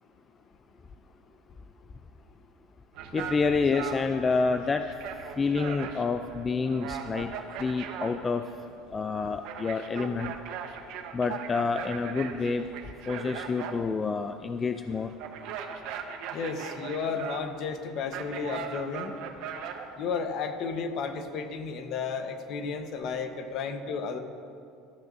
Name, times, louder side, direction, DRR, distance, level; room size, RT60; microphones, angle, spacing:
sound 1, 2.9-20.2, right 7 dB, 65° right, 1.1 m, -40 dB
voice 1, 3.1-4.9 5.4-7.3 7.6-8.4 8.9-10.3 11.1-12.7 13.1-15.1, left 4 dB, 20° left, 8 dB, 0.4 m, -28 dB
voice 2, 16.3-19.1 20.0-24.2, left 5 dB, 50° left, 6 dB, 1.1 m, -33 dB
19.0 x 13.0 x 2.7 m, 2.4 s
cardioid pair, 150°, 0 cm